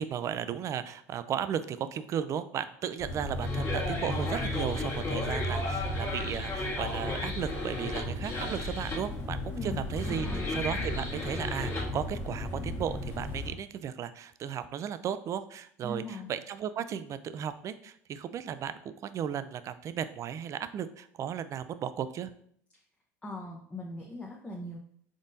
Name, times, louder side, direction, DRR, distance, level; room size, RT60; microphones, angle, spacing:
voice 1, 0.0-10.3 10.5-16.0 16.3-22.3, right 8 dB, 40° right, 13 dB, 0.3 m, -35 dB
sound 1, 3.0-13.5, left 2 dB, 30° left, 1.5 m, -33 dB
voice 2, 9.5-10.5 10.8-10.9 15.8-16.3 22.7-22.8 23.2-24.8, left 1 dB, 15° left, -1 dB, 0.6 m, -40 dB
3.8 x 3.6 x 2.6 m, 0.64 s
hypercardioid pair, 80°, 8 cm